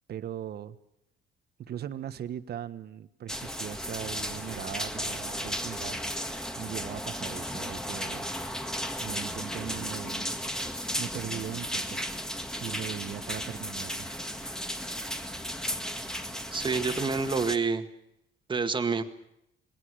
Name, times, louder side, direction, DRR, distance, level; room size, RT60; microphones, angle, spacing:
voice 1, 0.1-0.8 1.6-6.0 6.6-8.3 9.0-10.3 11.0-12.0 12.6-14.1, right 10 dB, 55° right, 12 dB, 1.5 m, -39 dB
sound 1, 3.3-17.6, equal, 5° left, 1.9 m, -35 dB
voice 2, 16.5-17.9 18.5-19.0, right 4 dB, 25° right, 8 dB, 1.9 m, -28 dB
27.5 x 21.0 x 6.4 m, 0.80 s
cardioid pair, 140°, 20 cm